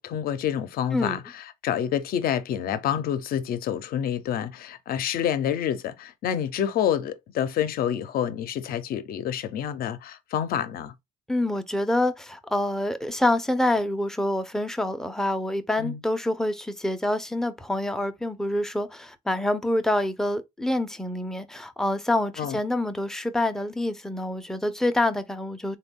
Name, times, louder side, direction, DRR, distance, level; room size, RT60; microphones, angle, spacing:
voice 1, 0.0-10.9 15.8-16.0 22.4-22.6, left 9 dB, 60° left, 0.5 m, -28 dB
voice 2, 11.3-25.8, left 1 dB, 5° left, 0.5 m, -26 dB
3.5 x 2.3 x 3.5 m
cardioid pair, 110°, 17 cm